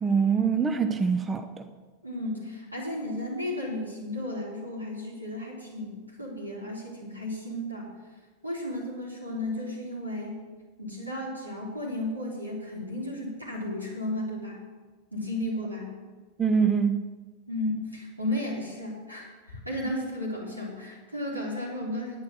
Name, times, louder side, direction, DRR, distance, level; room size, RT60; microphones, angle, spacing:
voice 1, 0.0-1.5 16.4-17.1, right 6 dB, 20° right, 0.7 m, -24 dB
voice 2, 2.0-7.9 8.4-10.4 10.8-14.6 15.1-15.9 17.5-22.2, left 1 dB, 85° right, 3.5 m, -34 dB
10.5 x 9.5 x 6.2 m
figure-of-eight pair, 90°, 0 cm